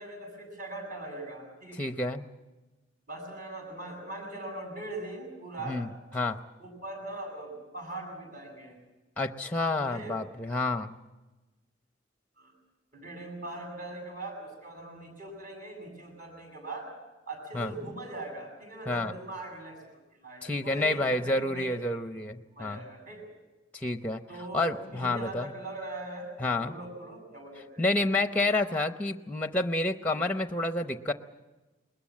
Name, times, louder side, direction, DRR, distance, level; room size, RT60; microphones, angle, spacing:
voice 1, 0.0-1.8 3.1-5.8 6.6-8.8 9.7-10.2 12.4-12.5 12.9-16.9 17.3-19.8 20.1-21.8 22.5-23.3 24.3-27.8, right 2 dB, 45° right, 2 dB, 7.8 m, -41 dB
voice 2, 1.8-2.2 5.6-5.9 6.1-6.4 9.2-10.9 17.5-17.7 18.9-19.1 20.4-22.8 23.7-24.2 24.5-25.5 26.4-26.7 27.8-31.1, left 2 dB, 10° left, 9 dB, 0.7 m, -29 dB
21.5 x 20.5 x 7.5 m, 1.1 s
head